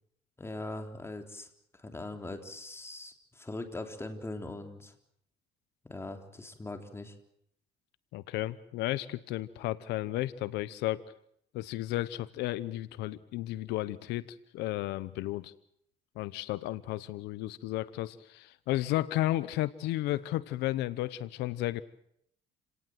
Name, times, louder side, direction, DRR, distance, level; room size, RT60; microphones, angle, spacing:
voice 1, 0.4-1.5 1.7-4.9 5.8-7.1, left 2 dB, 15° left, 6 dB, 3.7 m, -41 dB
voice 2, 8.1-11.0 11.5-15.5 16.2-21.8, left 16 dB, 90° left, 16 dB, 1.0 m, -33 dB
29.0 x 18.5 x 8.0 m, 0.71 s
cardioid pair, 110°, 17 cm